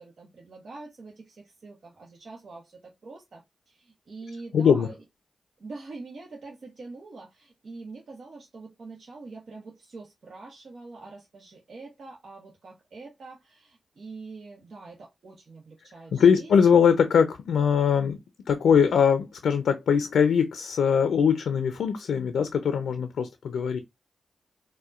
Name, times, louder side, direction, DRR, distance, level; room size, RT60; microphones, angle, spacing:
voice 1, 0.0-5.0 5.6-16.5, right 3 dB, 70° right, 0.9 m, -44 dB
voice 2, 4.5-4.9 16.1-18.2 18.5-23.8, left 7 dB, 90° left, 0.4 m, -21 dB
4.2 x 2.1 x 2.4 m
cardioid pair, 40°, 0 cm